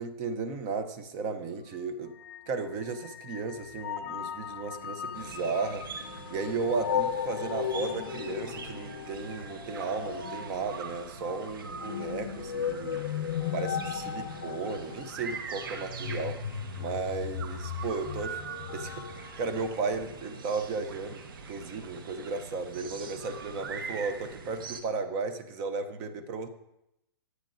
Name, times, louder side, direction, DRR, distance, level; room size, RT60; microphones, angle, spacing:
voice 1, 0.0-2.1 2.5-5.8 6.3-13.0 13.5-16.4 16.8-18.4 18.7-26.5, right 4 dB, 20° right, 10 dB, 0.6 m, -34 dB
sound 1, 1.6-1.7 2.2-20.4, left 8 dB, 50° left, 1.3 m, -37 dB
sound 2, 5.1-24.8, right 5 dB, 60° right, 1.3 m, -43 dB
25.5 x 9.4 x 2.6 m, 0.88 s
hypercardioid pair, 175°, 13 cm